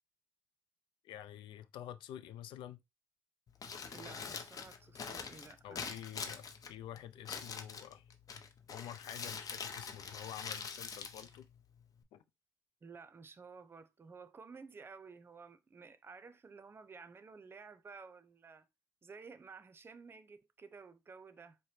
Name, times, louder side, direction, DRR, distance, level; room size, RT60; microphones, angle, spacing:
voice 1, 1.0-2.8 5.6-8.0 8.7-11.5 12.1-12.2, left 11 dB, 75° left, 0.5 m, -48 dB
Crumpling crinkling, 3.5-12.0, left 5 dB, 45° left, 0.8 m, -45 dB
voice 2, 3.9-6.0 12.8-18.7 19.0-21.6, right 5 dB, 30° right, 0.6 m, -53 dB
4.9 x 2.2 x 4.3 m
cardioid pair, 100°, 8 cm